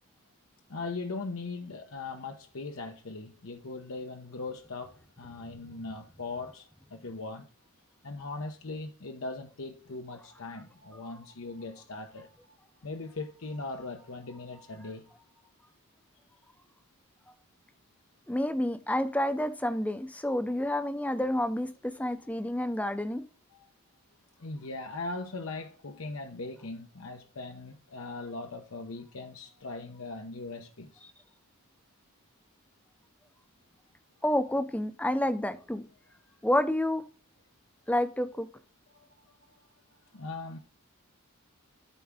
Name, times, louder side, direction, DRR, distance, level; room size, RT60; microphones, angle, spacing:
voice 1, 0.7-7.5 8.0-12.6 12.8-15.1 23.5-23.7 24.4-31.0 38.9-40.6, left 3 dB, 70° left, 0.8 m, -40 dB
voice 2, 18.3-23.2 34.2-35.8 36.4-37.0 37.9-38.5, left 1 dB, 5° left, 0.6 m, -29 dB
12.0 x 4.6 x 3.6 m
head